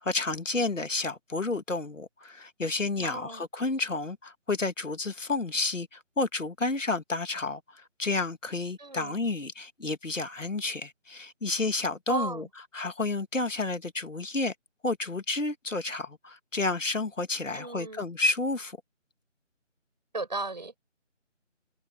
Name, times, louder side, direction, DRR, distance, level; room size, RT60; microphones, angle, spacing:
voice 1, 0.0-12.5 12.7-14.5 14.8-18.8, left 3 dB, 80° left, 2.1 m, -30 dB
voice 2, 3.0-3.4 8.8-9.2 12.1-12.5 17.5-18.1 20.1-20.8, right 3 dB, 35° right, 5.2 m, -36 dB
figure-of-eight pair, 180°, 38 cm